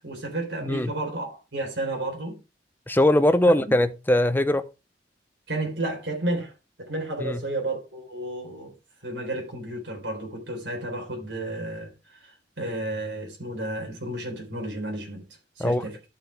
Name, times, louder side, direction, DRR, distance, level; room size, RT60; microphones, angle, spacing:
voice 1, 0.0-2.4 5.5-6.5 6.8-8.7 9.0-15.2 15.6-16.0, right 1 dB, 70° right, 3.9 m, -32 dB
voice 2, 2.9-4.6 7.2-7.4 15.6-15.8, left 1 dB, 10° left, 0.7 m, -21 dB
13.5 x 5.8 x 3.4 m
head